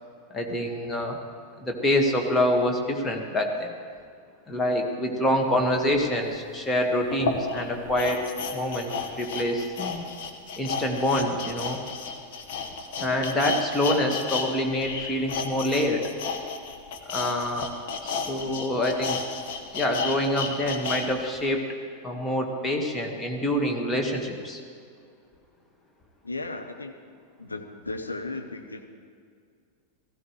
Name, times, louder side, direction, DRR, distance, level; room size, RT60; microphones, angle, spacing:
voice 1, 0.3-1.2 1.6-3.7 4.5-8.2 8.5-10.0 10.5-11.8 13.0-16.0 17.0-17.7 18.0-19.2 19.7-21.6 22.0-24.6, left 1 dB, 15° left, 2 dB, 1.8 m, -26 dB
voice 2, 5.0-5.3 18.4-18.8 26.2-26.9 27.4-28.9, left 2 dB, 80° left, 4 dB, 1.0 m, -36 dB
sound 1, 6.3-6.4 7.1-14.5 14.7-21.0 21.4-21.5, left 5 dB, 50° left, 1.3 m, -32 dB
17.0 x 15.5 x 3.3 m, 2.2 s
figure-of-eight pair, 90°, 0 cm